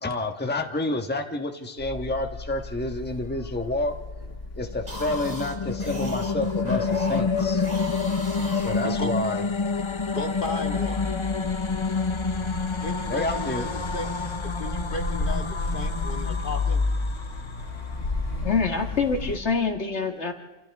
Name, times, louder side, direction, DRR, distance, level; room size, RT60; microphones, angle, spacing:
voice 1, 0.0-3.9 4.5-7.6 8.5-9.4 13.1-13.7, left 2 dB, 10° left, 5 dB, 1.3 m, -29 dB
sound 1, 1.8-19.4, left 3 dB, 85° left, 2.5 m, -33 dB
sound 2, 4.7-18.1, left 4 dB, 30° left, 0.7 m, -29 dB
sound 3, 4.7-9.5, right 1 dB, 35° right, 2.9 m, -38 dB
voice 2, 8.8-9.2 10.1-11.1 12.8-14.1 14.4-16.9, left 2 dB, 45° left, 4 dB, 2.3 m, -34 dB
voice 3, 13.8-14.3 18.4-20.3, left 5 dB, 65° left, 4 dB, 2.1 m, -26 dB
28.5 x 28.0 x 3.6 m, 1.2 s
omnidirectional pair, 1.2 m